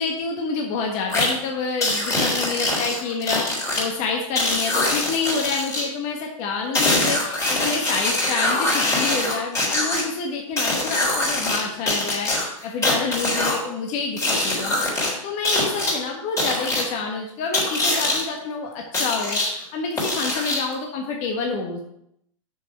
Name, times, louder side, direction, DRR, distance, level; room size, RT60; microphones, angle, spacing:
voice 1, 0.0-3.5 3.8-14.7 15.2-21.8, left 4 dB, 40° left, 1 dB, 1.5 m, -28 dB
sound 1, 1.1-1.3 1.8-3.8 4.3-5.8 6.7-10.0 10.6-11.6 11.9-13.6 14.2-15.1 15.4-15.9 16.4-16.8 17.5-18.2 18.9-19.5 20.0-20.7, left 2 dB, 15° left, 3.6 m, -23 dB
6.6 x 6.4 x 5.7 m, 0.75 s
hypercardioid pair, 115°, 18 cm